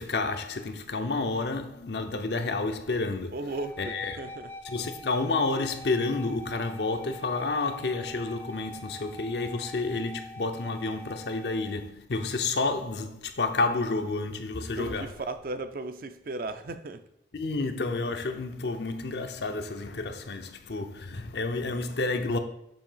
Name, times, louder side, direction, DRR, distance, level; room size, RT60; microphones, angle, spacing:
voice 1, 0.0-3.4 3.8-4.2 4.6-15.1 17.3-22.4, left 3 dB, 70° left, 0.6 m, -30 dB
voice 2, 3.3-4.5 14.8-17.0, right 2 dB, 50° right, 0.4 m, -36 dB
sound 1, 3.5-11.8, left 2 dB, 15° left, 0.4 m, -45 dB
6.9 x 2.8 x 5.6 m
head